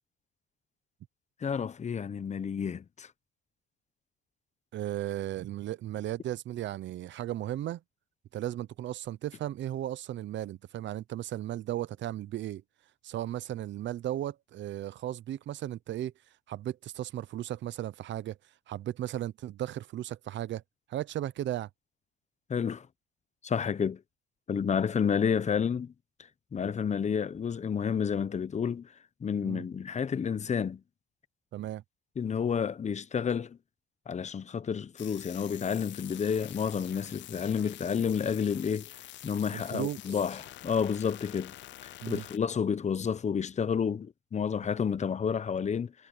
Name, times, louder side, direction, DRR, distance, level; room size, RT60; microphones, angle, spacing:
voice 1, 1.4-3.1 22.5-22.9 23.4-24.0 24.5-25.9 26.5-28.9 29.2-30.8 32.2-33.6 34.1-38.9 39.2-41.5 41.8-45.9, left 7 dB, 35° left, 0.8 m, -30 dB
voice 2, 4.7-7.8 8.3-12.6 13.0-16.1 16.5-18.4 18.7-20.6 20.9-21.7 29.4-29.7 31.5-31.8 39.5-40.0 42.0-42.2, right 13 dB, 65° right, 0.7 m, -35 dB
sound 1, 35.0-42.4, left 14 dB, 70° left, 0.5 m, -47 dB
cardioid pair, 90°, 20 cm